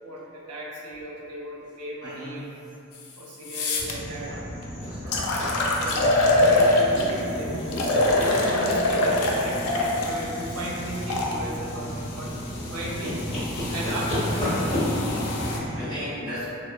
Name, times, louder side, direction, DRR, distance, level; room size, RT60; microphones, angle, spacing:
voice 1, 0.0-2.5 3.2-4.4 5.8-13.2 13.7-14.7, right 1 dB, 85° right, -3 dB, 0.5 m, -35 dB
voice 2, 2.0-2.3 4.8-5.2 13.6-13.9 15.2-16.4, equal, 15° right, -18 dB, 0.9 m, -38 dB
sound 1, 2.9-3.0 3.4-3.9 4.6-4.7 5.1-7.2 7.7-11.3 12.2-15.6, left 2 dB, 85° left, 0.4 m, -25 dB
sound 2, 3.8-15.8, equal, 30° left, 1.4 m, -32 dB
3.2 x 2.0 x 2.4 m, 2.8 s
head